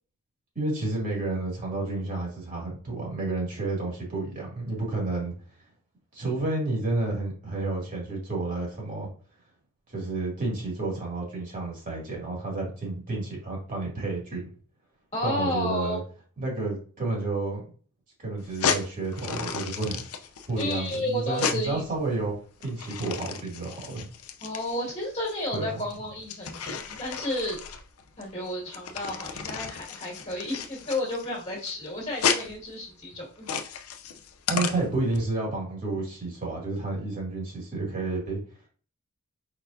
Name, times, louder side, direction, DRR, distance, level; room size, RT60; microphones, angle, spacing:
voice 1, 0.6-5.3 6.1-9.1 9.9-14.4 15.2-16.0 16.4-17.6 18.2-20.1 20.5-22.3 22.6-24.1 25.5-25.7 34.5-38.4, right 2 dB, 40° right, -2 dB, 2.3 m, -30 dB
voice 2, 15.1-16.0 20.6-21.8 24.4-27.6 28.2-33.5, left 1 dB, 30° left, -4 dB, 1.9 m, -32 dB
sound 1, 18.4-35.2, left 6 dB, 80° left, 0.6 m, -33 dB
4.9 x 4.1 x 2.6 m, 0.41 s
head